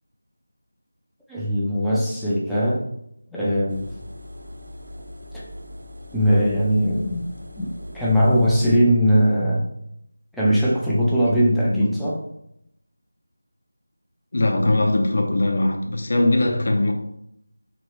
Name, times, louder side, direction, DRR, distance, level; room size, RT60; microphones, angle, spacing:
voice 1, 1.3-2.8 3.3-3.9 5.3-5.4 6.1-7.3 7.6-9.7 10.3-12.2, equal, ahead, 0.4 m, -20 dB
Engine, 3.7-8.7, left 1 dB, 65° right, 0.6 m, -39 dB
voice 2, 14.3-16.9, left 2 dB, 45° left, 0.6 m, -20 dB
3.0 x 2.7 x 3.2 m
figure-of-eight pair, 170°, 0 cm